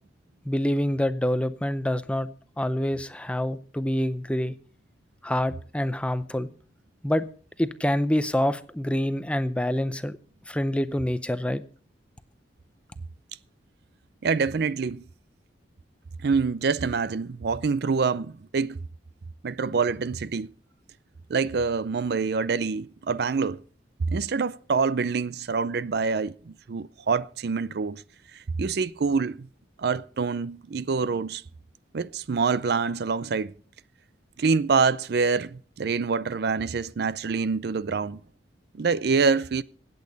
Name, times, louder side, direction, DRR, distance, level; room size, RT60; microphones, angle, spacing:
voice 1, 0.5-2.3 2.6-4.5 5.2-6.5 7.0-7.2 7.6-10.2 10.5-11.6, left 1 dB, 5° left, 0.5 m, -26 dB
voice 2, 14.2-15.0 16.2-18.8 19.4-20.5 21.3-23.6 24.1-28.0 28.3-29.5 29.8-31.4 31.9-33.5 34.4-38.2 38.7-39.6, right 5 dB, 60° right, 0.4 m, -26 dB
16.5 x 8.6 x 4.0 m
head